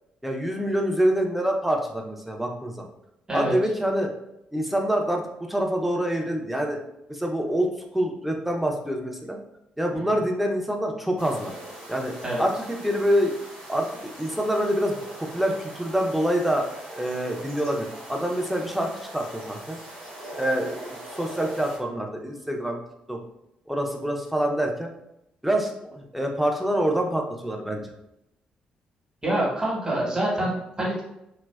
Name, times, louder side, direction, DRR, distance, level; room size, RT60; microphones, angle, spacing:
voice 1, 0.2-2.9 3.3-4.1 4.5-5.2 5.5-6.8 7.1-9.4 9.8-11.5 11.9-13.3 13.7-19.8 20.3-20.9 21.2-22.8 23.1-23.2 23.7-24.9 25.4-27.9, equal, 5° right, 2 dB, 0.5 m, -26 dB
sound 1, 11.2-21.8, right 1 dB, 90° right, 1.0 m, -42 dB
voice 2, 29.2-31.0, right 1 dB, 20° right, -4 dB, 1.1 m, -26 dB
2.5 x 2.1 x 2.3 m, 0.82 s
hypercardioid pair, 50°, 3 cm